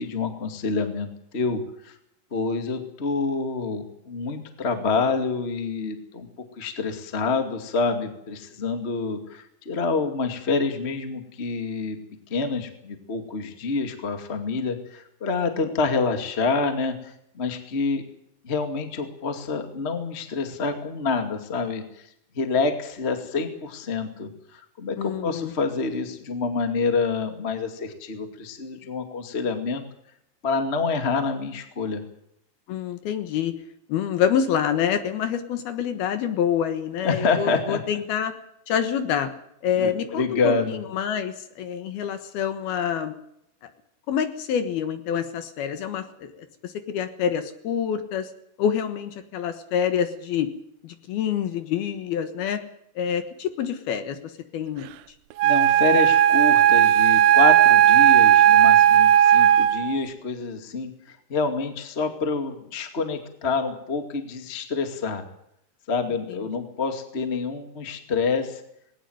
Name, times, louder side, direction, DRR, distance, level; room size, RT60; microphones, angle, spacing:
voice 1, 0.0-1.9 2.3-6.3 6.6-12.0 12.3-18.0 18.4-22.1 22.3-29.8 30.4-32.0 37.0-37.8 39.7-40.8 55.4-65.2 65.9-68.6, left 4 dB, 30° left, 7 dB, 1.2 m, -27 dB
voice 2, 25.0-25.5 32.7-33.6 33.9-38.3 38.7-39.3 39.6-43.1 44.1-48.3 48.6-50.5 50.8-52.6 53.0-54.9, left 8 dB, 65° left, 9 dB, 3.0 m, -27 dB
Wind instrument woodwind instrument, 55.4-60.0, right 11 dB, 85° right, 3.4 m, -16 dB
19.5 x 18.5 x 8.0 m, 0.74 s
omnidirectional pair, 5.2 m